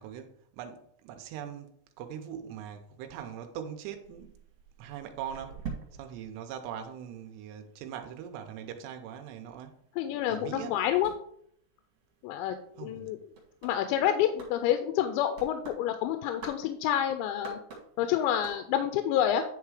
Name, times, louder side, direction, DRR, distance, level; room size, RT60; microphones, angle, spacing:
voice 1, 0.0-4.3 4.8-5.6 5.9-9.8 10.3-10.8 12.8-13.2, right 9 dB, 80° right, 2.9 m, -41 dB
sound 1, 4.0-7.5 7.8-19.0, right 5 dB, 55° right, 3.0 m, -48 dB
voice 2, 10.0-11.1 12.2-12.6 12.8-13.2 13.6-17.6 18.0-19.4, left 10 dB, 85° left, 2.9 m, -28 dB
10.5 x 3.6 x 4.9 m
omnidirectional pair, 5.2 m